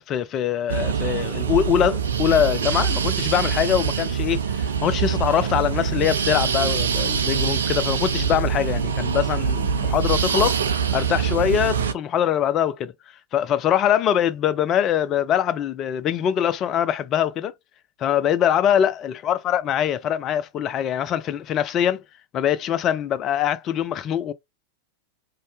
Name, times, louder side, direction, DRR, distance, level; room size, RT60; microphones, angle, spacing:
voice 1, 0.0-10.6 10.9-12.9 13.3-17.5 18.0-22.0 22.3-24.3, left 10 dB, 30° left, 0.3 m, -23 dB
sound 1, 0.7-11.9, right 6 dB, 65° right, 0.4 m, -24 dB
2.6 x 2.0 x 3.3 m
figure-of-eight pair, 90°, 0 cm